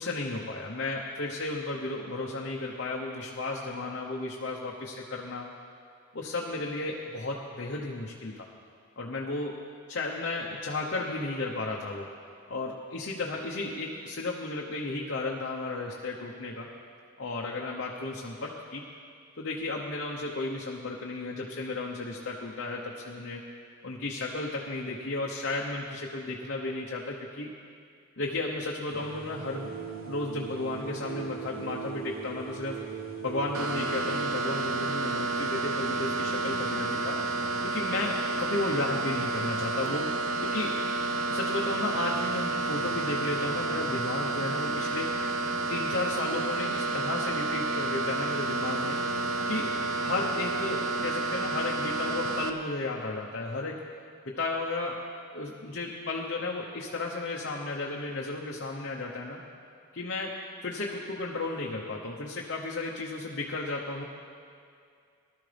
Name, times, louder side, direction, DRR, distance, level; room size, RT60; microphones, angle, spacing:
voice 1, 0.0-5.5 6.1-8.5 9.0-9.6 9.9-12.1 12.5-16.7 17.2-18.8 19.4-23.4 23.8-27.5 28.2-29.7 30.0-32.8 33.2-37.3 37.6-40.1 40.4-40.8 41.3-45.2 45.7-49.0 49.5-53.8 54.3-55.0 55.3-59.4 59.9-64.0, left 2 dB, 55° left, -2 dB, 1.0 m, -34 dB
sound 1, 28.9-36.7, right 6 dB, 45° right, 0.9 m, -41 dB
sound 2, 33.5-52.5, right 3 dB, 75° right, 0.8 m, -30 dB
19.5 x 12.5 x 3.4 m, 2.3 s
head